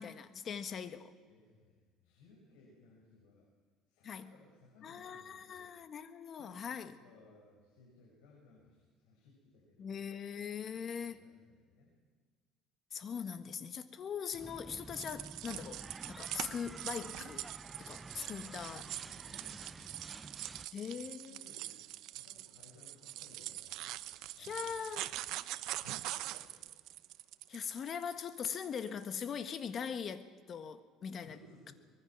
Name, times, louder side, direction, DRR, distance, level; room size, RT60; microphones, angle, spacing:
voice 1, 0.0-1.1 4.0-4.3 4.8-6.9 9.8-11.2 12.9-17.5 17.8-18.8 20.7-21.4 24.4-25.2 27.5-31.3, left 7 dB, 40° left, 10 dB, 1.5 m, -41 dB
voice 2, 1.3-3.5 3.9-5.7 6.4-10.0 11.0-12.0 18.1-20.1 20.8-23.8 24.4-25.0 25.8-26.7 31.2-31.7, left 3 dB, 85° left, -2 dB, 6.7 m, -62 dB
sound 1, 14.3-20.7, right 3 dB, 15° right, 0.5 m, -50 dB
sound 2, 14.9-29.0, right 15 dB, 70° right, 0.9 m, -44 dB
24.5 x 21.5 x 6.1 m, 1.5 s
cardioid pair, 120°, 0 cm